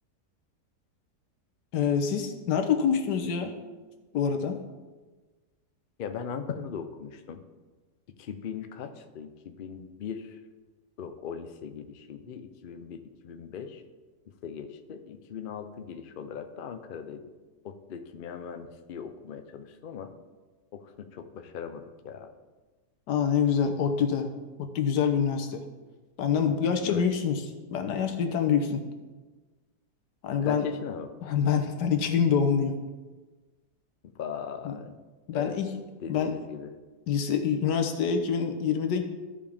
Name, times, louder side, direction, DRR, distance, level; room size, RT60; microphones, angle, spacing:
voice 1, 1.7-3.6 4.1-4.6 23.1-24.3 24.6-25.6 26.2-27.4 27.7-28.8 30.2-30.7 31.2-32.8 34.6-34.8 35.3-35.7 36.1-36.4 37.1-39.0, left 7 dB, 85° left, 6 dB, 1.5 m, -26 dB
voice 2, 6.0-7.4 8.2-10.3 11.0-13.8 14.4-17.2 17.6-20.1 20.7-22.3 26.8-27.1 30.4-31.1 34.2-34.9 35.3-35.6 36.0-36.7, left 7 dB, 65° left, 8 dB, 0.5 m, -39 dB
14.5 x 5.1 x 3.5 m, 1.3 s
omnidirectional pair, 1.8 m